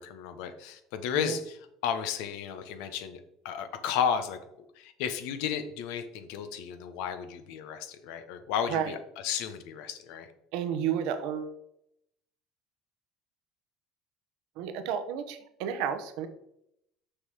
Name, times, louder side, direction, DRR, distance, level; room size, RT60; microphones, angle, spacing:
voice 1, 0.0-1.6 1.8-3.2 3.4-4.4 4.8-9.0 9.2-10.3, left 8 dB, 75° left, 9 dB, 1.0 m, -33 dB
voice 2, 10.5-11.5 14.6-16.3, right 8 dB, 75° right, 9 dB, 1.0 m, -31 dB
6.5 x 5.8 x 4.8 m, 0.76 s
hypercardioid pair, 75°, 0 cm